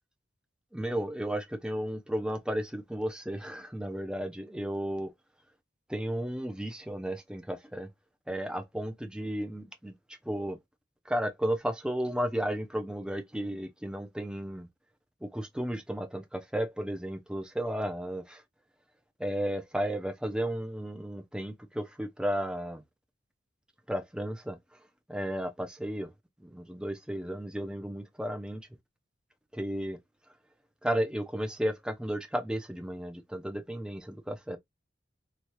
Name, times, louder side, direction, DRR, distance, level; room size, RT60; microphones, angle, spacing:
voice 1, 0.7-5.1 5.9-7.9 8.3-9.9 10.2-10.6 11.1-14.7 15.2-18.4 19.2-22.8 23.9-24.6 25.1-26.1 26.4-28.7 29.5-30.0 30.8-34.6, equal, 5° right, 0.5 m, -33 dB
2.9 x 2.3 x 3.0 m
head